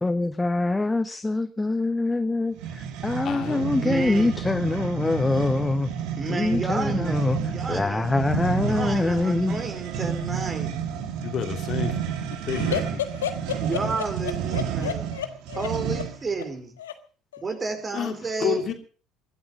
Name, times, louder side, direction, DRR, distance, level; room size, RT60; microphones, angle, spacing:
voice 1, 0.0-5.9 6.3-9.6, left 2 dB, 15° left, 0.9 m, -24 dB
sound 1, 2.6-16.3, right 7 dB, 65° right, 2.3 m, -30 dB
voice 2, 3.2-3.7 11.2-12.0 12.5-12.8 17.9-18.7, left 9 dB, 50° left, 3.1 m, -29 dB
voice 3, 3.8-4.3 6.2-7.2 7.5-8.1 8.7-10.7 13.6-15.0 15.6-16.7 17.4-18.6, right 4 dB, 30° right, 4.8 m, -31 dB
voice 4, 12.4-16.4 16.8-16.9 17.3-17.6, left 9 dB, 80° left, 1.6 m, -33 dB
21.5 x 12.0 x 5.3 m
figure-of-eight pair, 60°, 0 cm